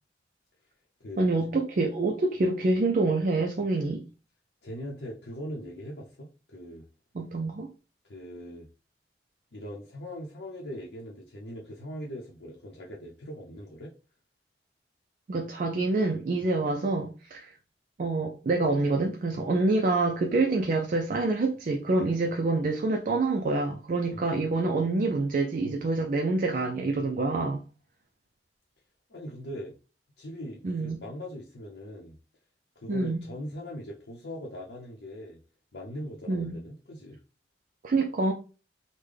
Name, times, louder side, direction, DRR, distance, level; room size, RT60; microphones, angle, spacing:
voice 1, 1.2-4.0 7.1-7.7 15.3-17.5 18.0-27.6 30.6-31.0 32.9-33.2 36.3-36.5 37.8-38.3, right 3 dB, 50° right, 0.4 m, -26 dB
voice 2, 4.6-6.9 8.1-8.7 9.5-13.9 24.1-24.3 29.1-29.7 30.2-32.2 32.8-35.4 35.7-37.2, equal, 80° left, 0.7 m, -40 dB
3.7 x 2.1 x 3.3 m
head